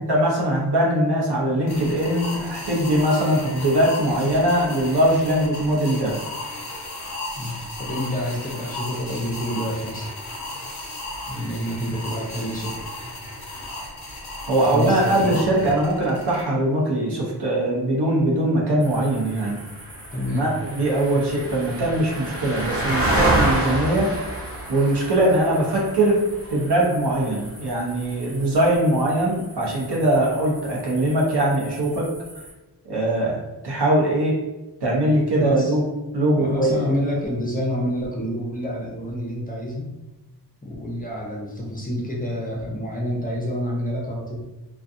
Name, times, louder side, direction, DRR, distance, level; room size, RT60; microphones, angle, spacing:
voice 1, 0.0-6.1 14.5-19.6 20.3-24.1 24.7-26.2 26.5-32.1 32.8-34.4 34.8-35.8 36.1-36.8, right 1 dB, 75° right, -3 dB, 0.8 m, -21 dB
sound 1, 1.7-16.4, left 2 dB, 40° left, 0.9 m, -35 dB
voice 2, 7.3-10.2 11.3-12.9 14.7-15.6 20.1-20.5 35.3-35.7 36.4-39.9 40.6-44.4, equal, 20° left, -3 dB, 0.6 m, -28 dB
sound 2, 18.8-32.5, right 1 dB, 35° right, 0.7 m, -30 dB
2.5 x 2.3 x 2.6 m, 1.1 s
wide cardioid pair, 95°, 41 cm